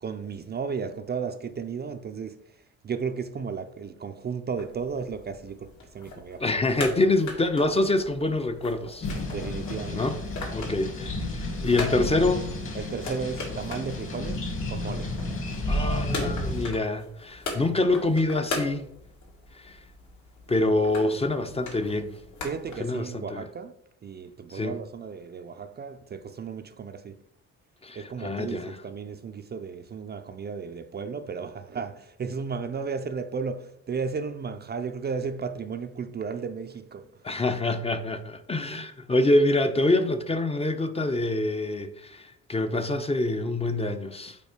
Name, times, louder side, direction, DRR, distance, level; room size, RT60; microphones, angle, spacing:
voice 1, 0.0-6.6 9.3-10.1 12.7-14.4 14.7-15.1 22.4-23.8 24.0-27.2 28.0-37.1, right 5 dB, 35° right, 0.4 m, -34 dB
sound 1, 4.6-22.7, left 2 dB, 70° left, 2.2 m, -40 dB
voice 2, 6.4-9.1 9.9-10.2 10.5-12.5 15.7-18.9 19.5-19.8 20.5-22.2 22.8-23.4 24.5-24.8 27.8-28.8 37.2-44.4, left 2 dB, 20° left, 0.6 m, -26 dB
sound 2, 9.0-16.7, left 1 dB, 45° left, 1.8 m, -32 dB
5.3 x 4.3 x 4.9 m
cardioid pair, 90°, 30 cm